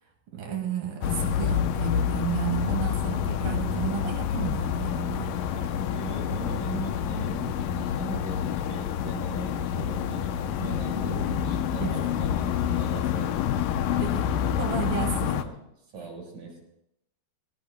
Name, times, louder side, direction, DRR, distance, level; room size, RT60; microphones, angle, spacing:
voice 1, 0.3-5.3 11.8-12.1 14.0-14.2 14.6-15.4 16.0-16.1, right 8 dB, 65° right, 3 dB, 3.5 m, -32 dB
sound 1, 1.0-15.4, left 9 dB, 85° left, 1.9 m, -28 dB
voice 2, 5.5-14.1 14.5-14.7 15.3-16.6, right 4 dB, 50° right, -1 dB, 5.6 m, -39 dB
21.5 x 20.0 x 2.2 m, 0.81 s
omnidirectional pair, 4.5 m